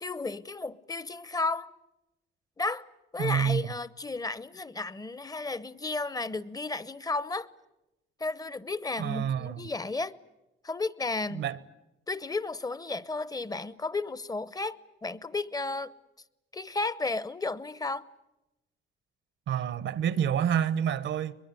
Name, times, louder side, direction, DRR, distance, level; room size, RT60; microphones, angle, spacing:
voice 1, 0.0-1.7 2.6-2.9 3.1-7.5 8.2-10.2 10.6-11.4 12.1-15.9 16.5-18.1, left 3 dB, 20° left, 0.8 m, -33 dB
voice 2, 3.2-3.7 9.0-9.7 11.3-11.6 19.5-21.3, right 9 dB, 75° right, 1.1 m, -28 dB
23.0 x 22.0 x 9.7 m
cardioid pair, 90°, 20 cm